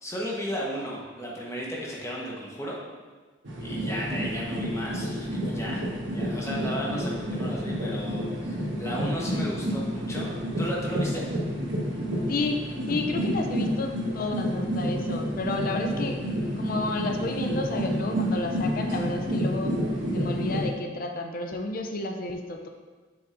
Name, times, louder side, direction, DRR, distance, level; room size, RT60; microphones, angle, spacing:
voice 1, 0.0-2.8 3.6-11.2, equal, 15° left, -4 dB, 1.1 m, -35 dB
sound 1, 3.4-20.6, equal, 75° right, 1.4 m, -29 dB
voice 2, 12.3-16.2 16.6-19.7 20.1-22.7, left 2 dB, 50° left, 4 dB, 0.5 m, -31 dB
7.0 x 6.5 x 2.6 m, 1.3 s
head